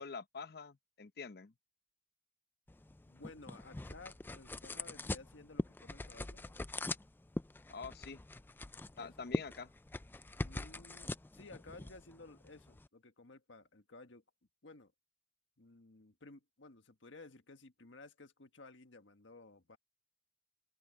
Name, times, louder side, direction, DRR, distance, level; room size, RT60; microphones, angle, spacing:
voice 1, 0.0-1.5 7.7-8.2 9.0-9.7, left 5 dB, 55° left, 0.8 m, -46 dB
sound 1, 2.7-12.9, left 2 dB, 10° left, 0.3 m, -43 dB
voice 2, 3.0-6.4 8.9-9.3 10.4-14.2 14.6-14.9 15.6-19.8, left 3 dB, 75° left, 1.5 m, -56 dB
open air
head